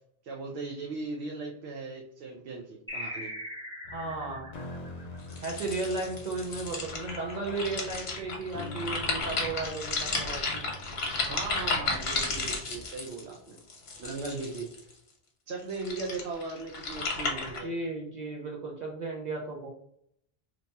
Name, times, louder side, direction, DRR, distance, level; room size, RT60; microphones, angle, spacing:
voice 1, 0.2-3.3 11.3-13.6 14.0-14.7 15.5-17.7, right 3 dB, 85° right, 0 dB, 0.8 m, -38 dB
sound 1, 2.9-5.9, left 1 dB, 5° right, 0.6 m, -41 dB
sound 2, 3.9-12.5, left 1 dB, 50° left, 0.5 m, -45 dB
voice 2, 3.9-4.5 5.4-10.6 17.6-19.7, right 3 dB, 55° right, -1 dB, 0.6 m, -35 dB
sound 3, 5.3-14.9 15.6-17.6, left 3 dB, 80° left, 1.0 m, -33 dB
2.8 x 2.2 x 4.0 m, 0.70 s
omnidirectional pair, 1.1 m